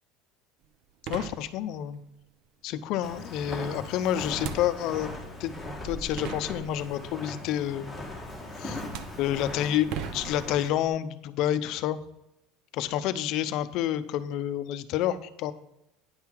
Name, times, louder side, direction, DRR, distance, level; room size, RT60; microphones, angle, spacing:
sound 1, 0.6-0.7 1.0-2.0 4.3-5.2 5.9-6.0 6.2-7.1 8.2-8.4 8.8-10.9, right 8 dB, 50° right, 0.7 m, -39 dB
voice 1, 1.1-2.0 2.6-5.1 5.4-5.5 5.8-7.9 8.6-8.8 9.2-12.0 12.7-15.5, left 11 dB, 50° left, 12 dB, 0.6 m, -29 dB
Walk footsteps, 3.0-10.7, left 1 dB, 5° right, 1.6 m, -39 dB
9.7 x 5.7 x 4.5 m, 0.87 s
cardioid pair, 155°, 0 cm